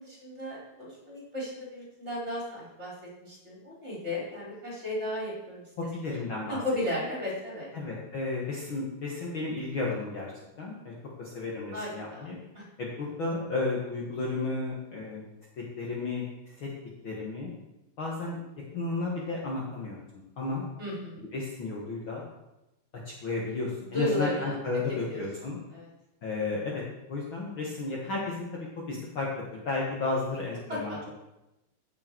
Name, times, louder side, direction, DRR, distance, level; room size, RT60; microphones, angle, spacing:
voice 1, 0.0-2.9 3.2-5.6 6.5-7.7 11.7-12.3 12.6-12.7 20.8-21.2 23.8-24.5 25.1-25.2 25.7-25.9 30.7-31.0, left 1 dB, 20° right, -5 dB, 4.0 m, -34 dB
voice 2, 5.8-6.6 7.7-10.3 10.6-10.9 11.2-12.4 12.8-15.2 15.8-16.7 17.0-17.5 18.0-18.4 18.7-20.0 20.4-20.6 21.2-22.2 23.1-25.6 26.2-26.8 27.1-29.3 29.7-31.1, left 3 dB, 50° left, -3 dB, 2.0 m, -33 dB
15.5 x 6.7 x 4.6 m, 0.95 s
omnidirectional pair, 3.3 m